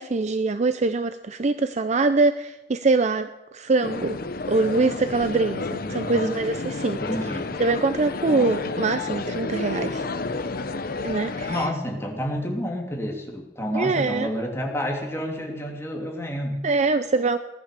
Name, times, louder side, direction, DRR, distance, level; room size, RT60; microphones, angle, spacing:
voice 1, 0.0-4.2 4.5-7.0 7.6-10.0 11.0-11.7 13.7-14.3 16.6-17.4, right 3 dB, 40° right, 11 dB, 0.5 m, -23 dB
sound 1, 3.8-11.7, left 3 dB, 55° left, 0.9 m, -30 dB
voice 2, 5.6-6.3 7.0-7.5 8.3-8.5 11.5-16.6, equal, 15° left, 0 dB, 2.8 m, -30 dB
18.5 x 11.5 x 6.8 m, 1.0 s
head